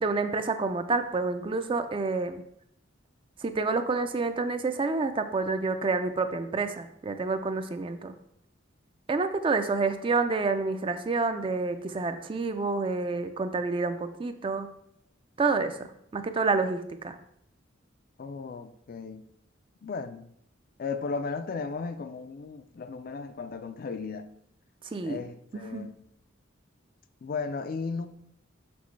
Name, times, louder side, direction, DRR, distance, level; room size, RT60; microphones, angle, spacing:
voice 1, 0.0-2.4 3.4-8.1 9.1-14.7 15.4-17.2 24.9-25.2 25.5-25.9, right 3 dB, 25° right, 0.3 m, -28 dB
voice 2, 18.2-19.3 19.8-20.3 20.8-24.3 25.0-26.0 27.2-28.1, left 4 dB, 45° left, 0.4 m, -35 dB
6.1 x 5.9 x 3.1 m
head